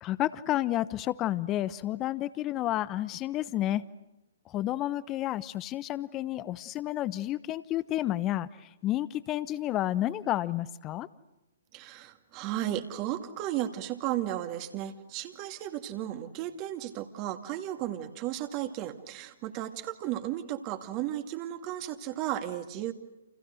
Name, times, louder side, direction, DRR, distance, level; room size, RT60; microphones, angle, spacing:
voice 1, 0.0-3.8 4.5-11.1, left 14 dB, 25° left, 17 dB, 1.0 m, -31 dB
voice 2, 11.7-22.9, right 12 dB, 30° right, 7 dB, 2.2 m, -34 dB
29.5 x 28.5 x 6.5 m, 0.97 s
figure-of-eight pair, 125°, 0 cm